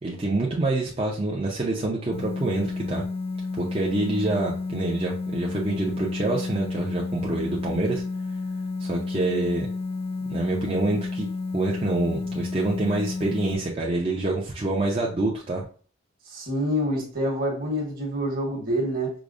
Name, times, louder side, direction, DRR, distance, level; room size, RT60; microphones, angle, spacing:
voice 1, 0.0-3.0 3.6-8.0 8.8-9.7 10.3-11.3 11.5-15.6, right 2 dB, 30° right, -3 dB, 0.5 m, -26 dB
sound 1, 2.1-13.5, left 3 dB, 30° left, 0.4 m, -31 dB
voice 2, 16.3-19.1, equal, 45° right, -1 dB, 1.2 m, -27 dB
4.9 x 2.0 x 2.4 m, 0.41 s
head